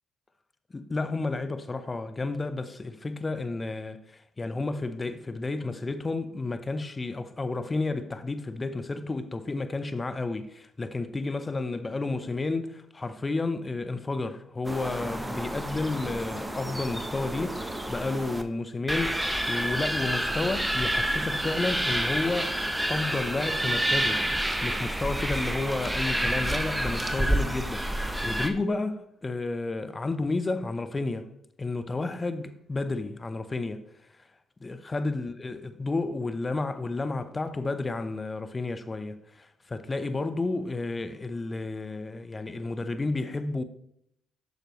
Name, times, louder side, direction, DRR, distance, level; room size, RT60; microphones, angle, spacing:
voice 1, 0.7-22.6 22.9-24.3 24.6-31.3 31.6-33.8 34.1-34.3 34.6-43.6, left 3 dB, 30° left, 0.8 m, -31 dB
sound 1, 14.6-18.4 18.9-28.5, right 1 dB, 10° right, 0.9 m, -29 dB
9.2 x 6.5 x 3.1 m
hypercardioid pair, 55°, 0 cm